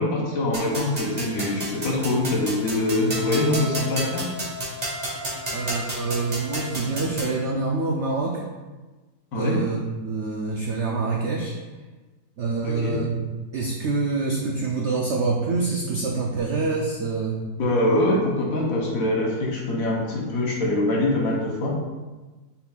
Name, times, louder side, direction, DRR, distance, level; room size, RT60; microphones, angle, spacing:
voice 1, 0.0-4.3 9.3-9.6 12.6-13.0 17.6-21.7, left 1 dB, 60° left, -2 dB, 1.2 m, -24 dB
sound 1, 0.5-7.4, equal, 30° right, 0.9 m, -32 dB
voice 2, 5.5-8.4 9.3-11.5 12.4-13.2 13.5-17.4, right 3 dB, 80° right, -1 dB, 0.6 m, -26 dB
5.3 x 4.2 x 2.3 m, 1.2 s
omnidirectional pair, 1.8 m